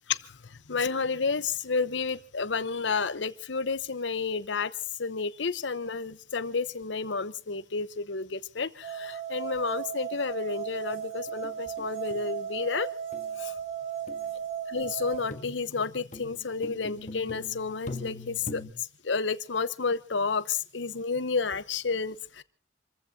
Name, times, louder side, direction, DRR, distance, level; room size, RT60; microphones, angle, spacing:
voice 1, 0.7-4.7 5.0-12.9 13.4-13.5 14.7-18.6 19.0-22.4, left 4 dB, 80° left, 15 dB, 0.9 m, -31 dB
sound 1, 8.8-15.3, right 9 dB, 35° right, 3.2 m, -36 dB
sound 2, 10.9-11.5 11.8-11.9 12.1-12.5 13.1-13.4 14.1-14.2 14.8-18.7, left 2 dB, 40° left, 1.5 m, -42 dB
28.0 x 15.0 x 2.8 m, 0.41 s
head